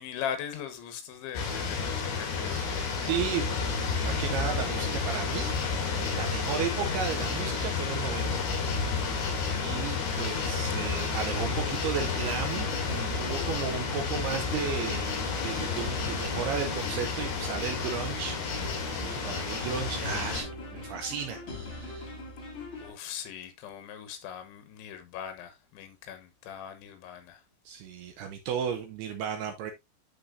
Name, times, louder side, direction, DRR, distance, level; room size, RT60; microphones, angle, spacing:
voice 1, 0.0-2.9 22.8-27.4, left 9 dB, 80° left, 3.5 m, -40 dB
sound 1, 1.3-20.4, left 5 dB, 65° left, 4.3 m, -31 dB
voice 2, 2.4-5.5 5.9-15.1 15.4-20.5 20.7-22.1 27.7-29.7, right 7 dB, 80° right, 2.4 m, -35 dB
sound 2, 11.5-22.9, left 2 dB, 35° left, 2.2 m, -41 dB
12.0 x 4.2 x 2.5 m
omnidirectional pair, 5.3 m